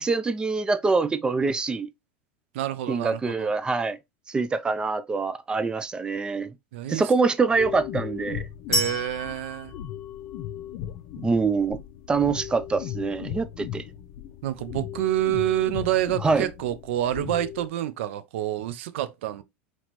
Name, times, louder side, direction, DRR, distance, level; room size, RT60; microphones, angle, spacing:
voice 1, 0.0-1.9 2.9-4.0 4.3-6.5 6.9-8.4 11.2-11.8 12.1-13.8 16.2-16.5, right 4 dB, 15° right, 0.3 m, -25 dB
voice 2, 2.5-3.5 6.7-7.0 8.7-9.7 14.4-19.4, right 13 dB, 80° right, 0.5 m, -28 dB
sound 1, 7.6-17.7, left 11 dB, 55° left, 0.5 m, -37 dB
sound 2, 8.7-10.7, equal, 10° left, 1.2 m, -30 dB
4.2 x 2.9 x 2.9 m
supercardioid pair, 130°, 7 cm